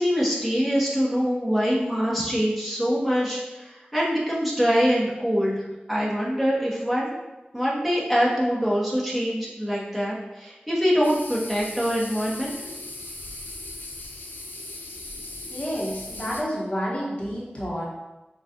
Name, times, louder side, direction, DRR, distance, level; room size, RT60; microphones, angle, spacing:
voice 1, 0.0-5.6 5.9-7.1 7.5-12.5, equal, 5° right, -7 dB, 1.1 m, -24 dB
sound 1, 11.0-16.4, left 2 dB, 75° left, 0.6 m, -38 dB
voice 2, 15.5-17.8, equal, 35° left, -6 dB, 1.0 m, -29 dB
6.2 x 2.4 x 2.7 m, 1.0 s
wide cardioid pair, 60°, 3 cm